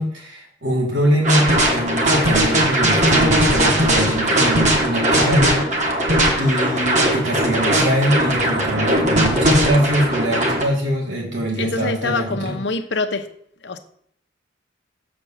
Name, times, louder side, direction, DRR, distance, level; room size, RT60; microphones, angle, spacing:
voice 1, 0.0-6.1 6.3-12.6, equal, 85° right, -2 dB, 2.9 m, -22 dB
sound 1, 1.2-10.6, right 1 dB, 40° right, 1.5 m, -18 dB
voice 2, 11.6-13.3 13.6-13.8, left 3 dB, 70° left, 7 dB, 0.9 m, -24 dB
7.1 x 5.2 x 7.1 m, 0.66 s
head